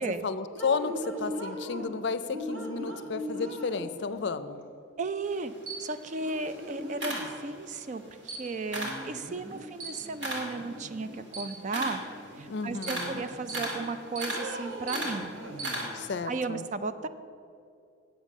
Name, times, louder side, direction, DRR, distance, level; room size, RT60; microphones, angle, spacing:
voice 1, 0.0-4.6 12.5-13.2 15.9-16.6, left 4 dB, 60° left, 12 dB, 0.5 m, -33 dB
sound 1, 0.5-1.9 2.3-4.2 5.6-5.7 6.2-7.3 8.7-9.6 10.0-11.2 11.7-12.6 12.9-13.9 14.3-16.1, equal, 90° right, 1.6 m, -40 dB
voice 2, 5.0-5.5 5.8-12.0 12.4-15.3 16.3-17.1, right 3 dB, 40° right, 11 dB, 0.4 m, -35 dB
Camera, 5.3-7.8 8.2-9.1 9.5-16.2, right 1 dB, 60° right, 2.3 m, -36 dB
8.3 x 8.1 x 6.2 m, 2.5 s
head